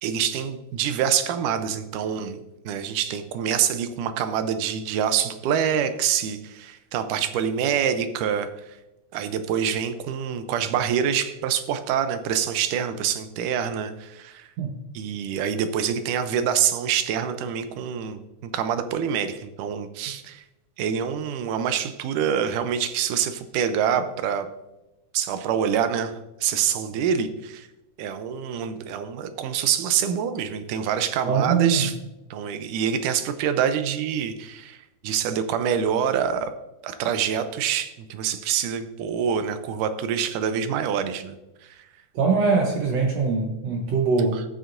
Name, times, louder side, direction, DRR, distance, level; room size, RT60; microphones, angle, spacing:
voice 1, 0.0-8.8 9.1-14.5 14.9-20.4 20.8-24.5 25.1-27.7 28.0-31.9 32.3-36.5 36.8-41.4 41.6-41.9 44.3-44.4, right 8 dB, 90° right, 9 dB, 2.3 m, -26 dB
voice 2, 31.3-31.9 42.2-44.5, right 4 dB, 65° right, 2 dB, 1.8 m, -22 dB
13.0 x 8.2 x 2.5 m, 0.99 s
omnidirectional pair, 3.6 m